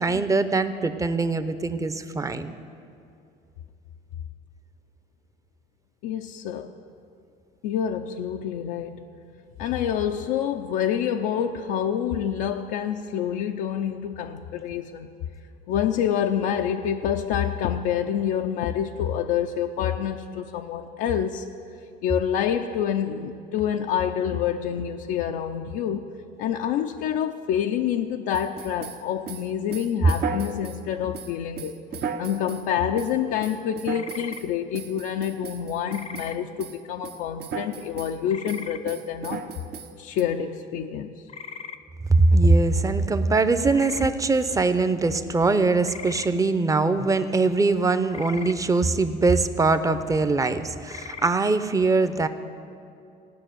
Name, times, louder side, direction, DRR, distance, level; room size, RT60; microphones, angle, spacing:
voice 1, 0.0-2.5 42.1-52.3, right 3 dB, 15° right, 11 dB, 0.7 m, -22 dB
voice 2, 6.0-6.7 7.6-9.0 9.6-15.1 15.7-21.4 22.0-26.1 26.4-31.8 32.2-39.4 40.0-41.2, left 9 dB, 80° left, 3 dB, 0.6 m, -27 dB
sound 1, 28.3-30.8 31.1-32.6 33.0-33.1 33.4-34.5 34.7-36.3 36.6-36.8 37.0-38.2 38.5-40.2, right 6 dB, 55° right, 1.0 m, -35 dB
sound 2, 33.9-34.4 35.9-36.4 38.3-38.8 41.3-41.8 43.7-44.1 45.8-46.3 48.1-48.6 50.9-51.3, left 6 dB, 35° left, 0.6 m, -39 dB
16.5 x 6.1 x 9.2 m, 2.6 s
cardioid pair, 100°, 19 cm